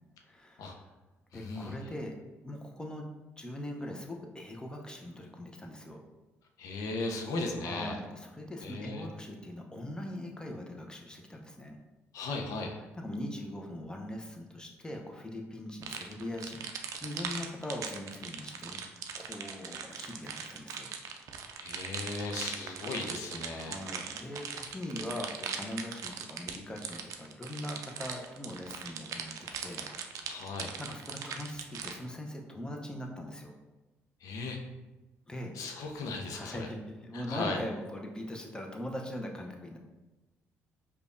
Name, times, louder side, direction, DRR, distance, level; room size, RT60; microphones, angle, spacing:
voice 1, 0.2-0.8 1.3-2.1 2.4-3.1 3.4-6.0 7.6-11.8 13.0-16.7 17.0-18.8 19.1-20.9 23.5-29.3 29.6-29.9 30.8-33.5 35.3-35.6 36.3-39.8, left 1 dB, 15° left, 1 dB, 0.7 m, -41 dB
voice 2, 1.3-1.8 6.6-8.0 8.6-9.1 12.1-12.7 21.6-23.8 30.3-30.7 34.2-34.6 35.5-36.7 37.1-37.6, left 3 dB, 70° left, 2 dB, 0.6 m, -37 dB
sound 1, 15.8-32.0, right 6 dB, 60° right, 0.4 m, -40 dB
5.0 x 2.3 x 2.5 m, 1.1 s
hypercardioid pair, 55°, 6 cm